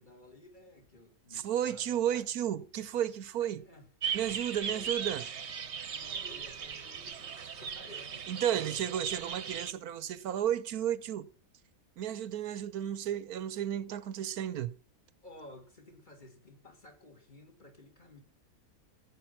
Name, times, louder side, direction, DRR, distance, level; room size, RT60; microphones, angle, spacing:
voice 1, 0.0-2.2 3.4-3.9 4.6-4.9 5.9-8.9 15.2-18.2, left 1 dB, 30° left, 3.4 m, -54 dB
voice 2, 1.3-3.7 4.1-5.2 8.3-11.3 12.0-14.7, right 10 dB, 80° right, 1.3 m, -33 dB
sound 1, 4.0-9.7, right 7 dB, 50° right, 1.2 m, -38 dB
15.5 x 8.9 x 5.9 m
omnidirectional pair, 1.6 m